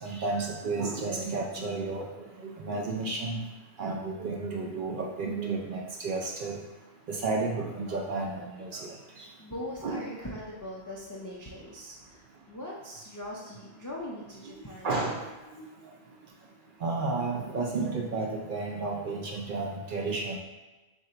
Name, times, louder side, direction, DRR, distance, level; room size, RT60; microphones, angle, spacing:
voice 1, 0.0-3.4 3.8-6.6 7.1-8.9 9.2-9.3 9.8-10.0 14.4-14.6 14.8-15.2 15.6-15.7 16.8-20.4, right 3 dB, 55° right, 0 dB, 0.6 m, -32 dB
voice 2, 9.4-14.9, left 1 dB, 30° left, -4 dB, 0.3 m, -41 dB
3.7 x 2.6 x 4.3 m, 1.1 s
omnidirectional pair, 1.1 m